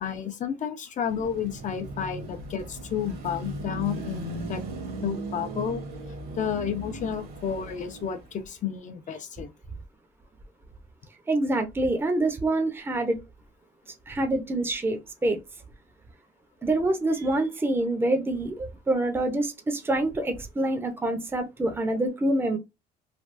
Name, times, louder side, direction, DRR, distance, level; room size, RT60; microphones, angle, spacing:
voice 1, 0.0-4.6 5.0-5.8 6.4-9.5, left 8 dB, 45° left, 0.7 m, -31 dB
Car passing by / Traffic noise roadway noise / Engine, 1.1-8.4, right 2 dB, 60° right, 1.1 m, -37 dB
voice 2, 11.3-13.2 14.1-15.4 16.6-22.6, right 2 dB, 15° right, 0.6 m, -26 dB
3.3 x 2.3 x 2.5 m
cardioid pair, 110°, 17 cm